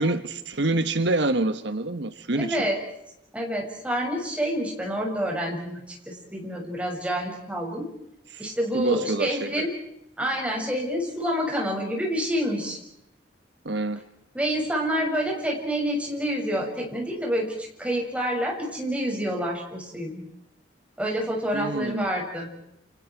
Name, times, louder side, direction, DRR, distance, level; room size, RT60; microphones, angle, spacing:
voice 1, 0.0-2.7 8.3-8.5 8.7-9.7 13.6-14.0 21.5-22.1, right 2 dB, 70° right, 1.3 m, -26 dB
voice 2, 2.4-2.8 3.3-7.9 8.4-9.7 10.2-12.8 14.3-20.2 21.0-22.5, equal, 5° right, 6.6 m, -28 dB
29.5 x 28.5 x 4.7 m
head